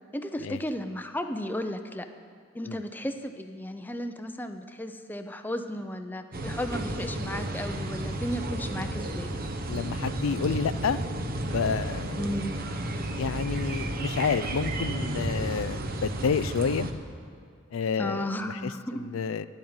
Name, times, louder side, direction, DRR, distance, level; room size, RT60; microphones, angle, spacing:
voice 1, 0.1-2.1 2.5-9.3 12.1-12.6 18.0-19.1, left 1 dB, 10° left, 7 dB, 0.6 m, -34 dB
sound 1, 6.3-16.9, right 1 dB, 45° right, 0.9 m, -32 dB
voice 2, 9.7-11.0 11.4-12.2 13.2-16.9 17.7-18.3 18.6-18.7 19.0-19.5, left 6 dB, 80° left, 14 dB, 0.4 m, -29 dB
11.0 x 8.6 x 9.5 m, 2.3 s
head